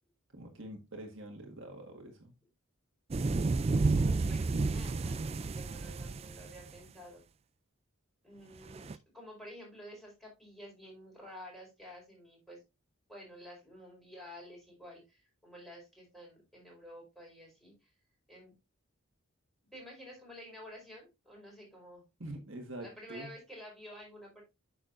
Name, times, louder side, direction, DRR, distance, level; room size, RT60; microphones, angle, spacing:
voice 1, 0.3-2.3 22.2-23.3, right 1 dB, 60° right, 1.7 m, -45 dB
sound 1, 3.1-6.8 8.7-9.0, right 3 dB, 30° right, 0.3 m, -31 dB
voice 2, 3.8-7.2 8.2-12.6 13.1-17.9 18.3-18.5 19.7-22.0 22.8-24.4, equal, ahead, 4.5 m, -51 dB
8.8 x 6.8 x 2.6 m
head